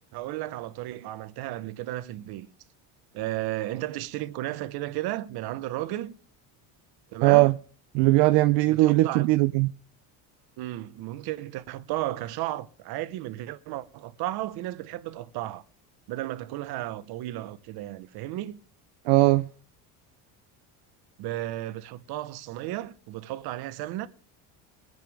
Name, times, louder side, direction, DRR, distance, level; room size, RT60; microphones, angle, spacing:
voice 1, 0.0-2.5 3.1-6.2 7.1-7.5 8.7-9.3 10.6-15.6 16.1-18.6 21.2-24.1, right 15 dB, 65° right, 1.0 m, -34 dB
voice 2, 7.2-7.5 7.9-9.7 19.1-19.5, right 20 dB, 80° right, 0.6 m, -19 dB
22.5 x 9.3 x 3.5 m
cardioid pair, 155°, 41 cm